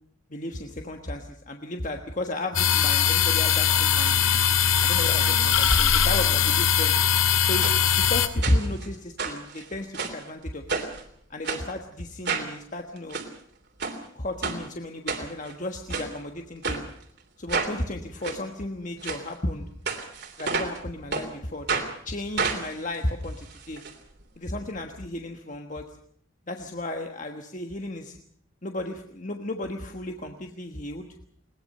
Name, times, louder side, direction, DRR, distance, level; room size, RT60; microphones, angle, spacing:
voice 1, 0.3-4.2 4.8-6.9 7.4-7.7 8.0-10.8 11.3-13.2 14.1-16.8 17.4-19.6 20.4-23.8 24.4-25.8 26.5-28.2 28.6-31.1, left 1 dB, 35° left, 4 dB, 1.4 m, -33 dB
sound 1, 2.6-8.3, left 8 dB, 75° left, 1.8 m, -21 dB
sound 2, 7.6-7.8 8.4-8.9 9.2-10.2 10.7-11.0 11.4-11.6 12.2-12.5 13.0-13.3 13.8-14.0 14.4-14.6 15.1-15.5 15.9-16.1 16.6-16.8 17.5-17.7 18.2-18.4 19.0-19.2 19.9-20.8 21.1-21.3 21.7-21.9 22.4-23.9 24.2-24.3 24.5-24.6, right 5 dB, 50° right, 3.1 m, -30 dB
21.5 x 19.5 x 6.7 m, 0.65 s
head